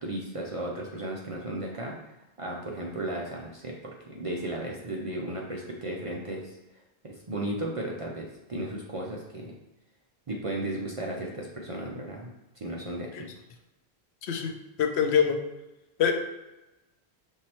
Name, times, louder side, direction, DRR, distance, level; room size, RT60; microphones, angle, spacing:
voice 1, 0.0-1.9 2.4-6.6 7.0-9.6 10.3-12.3 12.6-13.3, right 1 dB, 45° right, -2 dB, 0.4 m, -35 dB
voice 2, 14.2-15.4 16.0-16.1, left 7 dB, 80° left, 5 dB, 0.8 m, -25 dB
5.4 x 3.1 x 2.9 m, 0.99 s
omnidirectional pair, 1.1 m